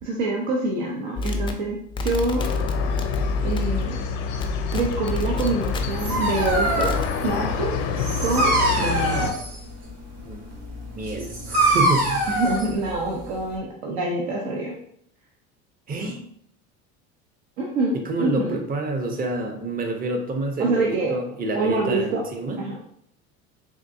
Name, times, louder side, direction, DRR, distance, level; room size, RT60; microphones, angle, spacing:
voice 1, 0.0-2.4 3.4-4.0 4.7-6.9 7.2-7.7 8.2-9.3 12.3-14.7 17.6-18.6 20.6-21.2 21.5-22.2 22.6-22.8, right 2 dB, 80° right, -1 dB, 0.7 m, -26 dB
sound 1, 1.2-4.1 4.4-6.1 6.4-7.1, left 3 dB, 15° left, 0.3 m, -28 dB
sound 2, 2.4-9.3, left 6 dB, 85° left, 0.6 m, -28 dB
Dog, 5.7-13.5, right 1 dB, 55° right, 1.3 m, -25 dB
voice 2, 11.0-12.1 15.9-16.2 17.9-22.6, right 2 dB, 25° right, 4 dB, 0.6 m, -28 dB
3.6 x 2.6 x 2.6 m, 0.68 s
supercardioid pair, 100°, 33 cm